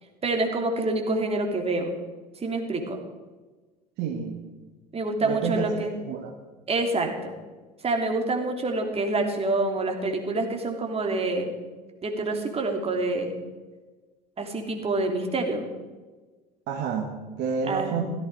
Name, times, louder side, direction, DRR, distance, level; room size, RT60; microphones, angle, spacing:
voice 1, 0.2-1.9 2.4-3.0 4.9-6.0 6.7-7.3 7.8-11.6 12.0-13.3 14.4-15.7 17.6-18.0, right 2 dB, 30° right, 3 dB, 3.2 m, -27 dB
voice 2, 4.0-4.4 5.2-5.7 6.1-6.3 16.7-18.0, right 6 dB, 55° right, 2 dB, 1.9 m, -29 dB
16.0 x 14.5 x 4.9 m, 1.3 s
hypercardioid pair, 70°, 21 cm